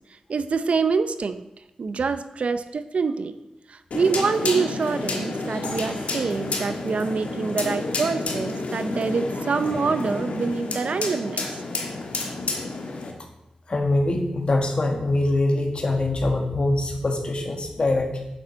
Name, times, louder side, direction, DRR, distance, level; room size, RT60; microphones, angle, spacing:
voice 1, 0.3-1.5 1.8-3.3 3.7-11.4, right 4 dB, 65° right, 11 dB, 0.5 m, -25 dB
sound 1, 3.9-13.1, left 3 dB, 85° left, 1.4 m, -30 dB
sound 2, 5.6-8.7, left 3 dB, 65° left, 1.9 m, -44 dB
voice 2, 13.7-18.2, left 2 dB, 50° left, 1 dB, 1.7 m, -23 dB
7.7 x 7.2 x 5.2 m, 0.90 s
wide cardioid pair, 90°, 2 cm